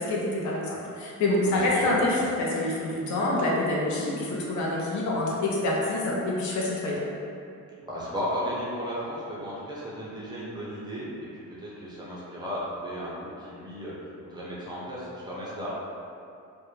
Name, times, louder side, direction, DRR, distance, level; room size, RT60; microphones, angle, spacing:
voice 1, 0.0-7.0, left 2 dB, 70° left, -4 dB, 0.6 m, -27 dB
voice 2, 1.4-2.0 7.8-13.9 14.2-15.7, equal, 15° right, -8 dB, 0.4 m, -35 dB
2.3 x 2.0 x 3.0 m, 2.5 s
cardioid pair, 150°, 31 cm